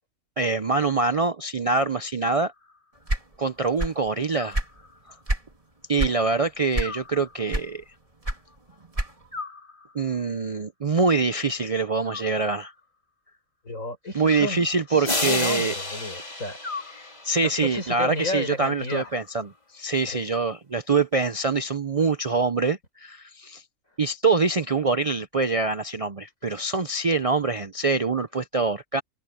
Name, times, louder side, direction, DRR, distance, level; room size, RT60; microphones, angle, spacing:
voice 1, 0.4-2.5 3.4-4.6 5.9-7.8 9.9-12.7 14.1-15.7 17.0-19.5 19.7-23.6 24.0-29.0, right 4 dB, 45° right, 0.5 m, -24 dB
Animal, 2.2-3.1 4.3-5.3 6.8-7.9 9.3-10.3 12.0-13.0 14.2-15.3 16.6-17.5 18.9-19.8, left 4 dB, 55° left, 5.6 m, -43 dB
sound 1, 3.1-4.1 4.4-5.5 6.0-6.2 6.7-7.2 7.5-9.4, right 1 dB, 25° right, 3.1 m, -27 dB
voice 2, 13.6-16.6 17.4-19.1 20.1-20.3, left 1 dB, 80° left, 7.3 m, -32 dB
sound 2, 15.1-17.7, left 2 dB, 30° left, 3.8 m, -30 dB
omnidirectional pair, 1.4 m